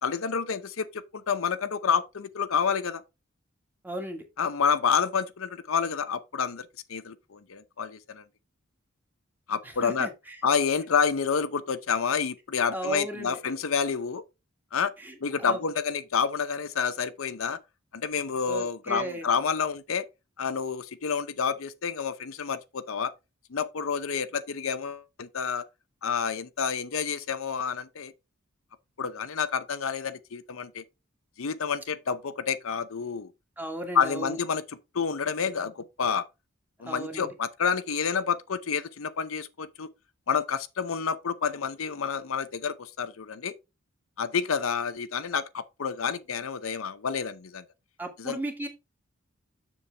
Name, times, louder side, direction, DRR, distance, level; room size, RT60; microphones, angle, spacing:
voice 1, 0.0-3.0 4.4-8.2 9.5-10.1 10.4-14.2 14.7-14.9 15.2-17.6 17.9-20.1 20.4-23.1 23.5-25.7 26.0-28.1 29.0-30.8 31.4-33.3 33.9-34.6 34.9-36.2 36.8-39.9 40.3-43.5 44.2-47.6 48.2-48.4, left 6 dB, 85° left, 0.7 m, -29 dB
voice 2, 3.8-4.2 9.6-10.4 12.7-13.4 15.0-15.6 18.5-19.3 33.6-34.4 36.9-37.3 48.0-48.7, right 1 dB, 10° right, 1.6 m, -35 dB
7.1 x 6.7 x 3.4 m
head